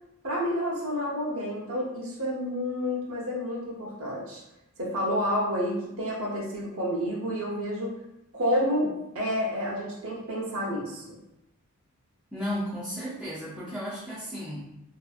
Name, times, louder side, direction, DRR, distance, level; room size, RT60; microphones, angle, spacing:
voice 1, 0.2-4.4 4.8-7.9 8.3-8.9 9.1-11.2, equal, 65° right, -5 dB, 0.7 m, -29 dB
voice 2, 12.3-14.7, equal, ahead, -9 dB, 0.4 m, -34 dB
2.6 x 2.4 x 2.4 m, 0.88 s
head